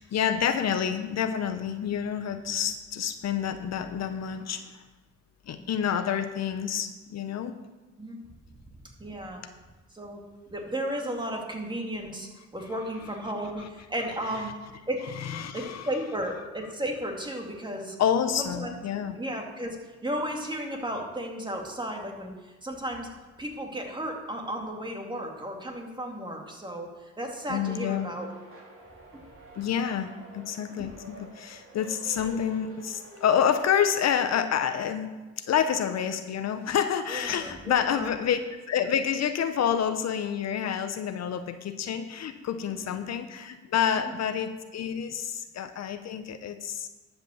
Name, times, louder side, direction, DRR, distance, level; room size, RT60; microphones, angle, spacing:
voice 1, 0.0-4.8 5.5-7.5 15.1-15.9 18.0-19.2 27.5-28.1 29.6-35.1 35.4-38.4 38.7-46.9, left 8 dB, 60° left, 9 dB, 0.8 m, -28 dB
voice 2, 9.0-9.4 9.9-10.2 10.5-14.5 14.9-15.1 15.5-18.0 18.4-18.7 19.2-19.8 20.0-23.1 23.4-28.3 29.1-29.2 30.8-30.9 37.1-38.1 42.7-42.9 43.9-44.1, right 1 dB, 15° right, 1 dB, 2.3 m, -34 dB
sound 1, 27.6-34.1, right 2 dB, 45° right, 3.3 m, -48 dB
12.0 x 5.9 x 7.0 m, 1.3 s
cardioid pair, 90°, 30 cm